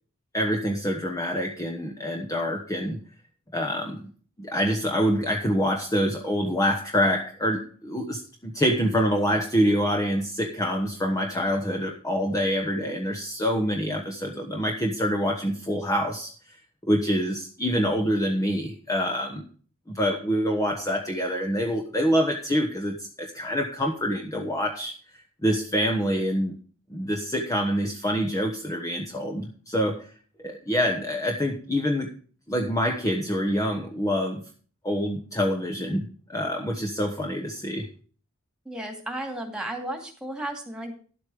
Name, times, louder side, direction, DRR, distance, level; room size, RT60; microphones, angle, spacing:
voice 1, 0.3-3.0 3.5-4.1 4.4-19.4 19.9-24.9 25.4-26.6 26.9-30.1 30.4-32.1 32.5-34.4 34.8-37.9, equal, 15° left, 2 dB, 1.1 m, -26 dB
voice 2, 38.6-40.9, right 1 dB, 5° right, 3 dB, 2.5 m, -34 dB
11.5 x 8.2 x 5.0 m, 0.42 s
head